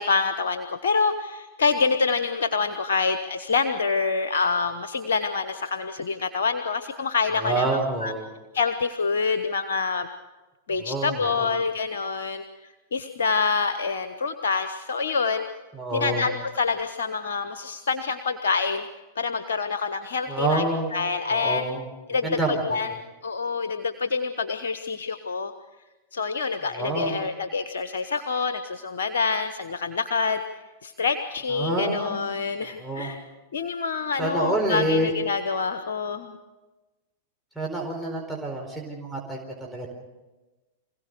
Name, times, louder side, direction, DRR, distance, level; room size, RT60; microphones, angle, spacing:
voice 1, 0.0-8.1 8.5-10.1 10.7-15.4 15.9-18.9 19.2-20.7 20.9-21.7 22.1-22.9 23.2-25.5 26.1-33.2 33.5-36.4, left 4 dB, 75° left, 9 dB, 1.1 m, -26 dB
voice 2, 7.4-8.3 10.8-11.5 15.7-16.3 20.3-20.9 21.3-21.9 22.2-22.8 26.7-27.2 31.5-32.1 32.8-33.1 34.2-35.1 37.6-39.9, right 2 dB, ahead, 1 dB, 4.5 m, -28 dB
25.0 x 17.0 x 6.8 m, 1.1 s
hypercardioid pair, 100°, 0 cm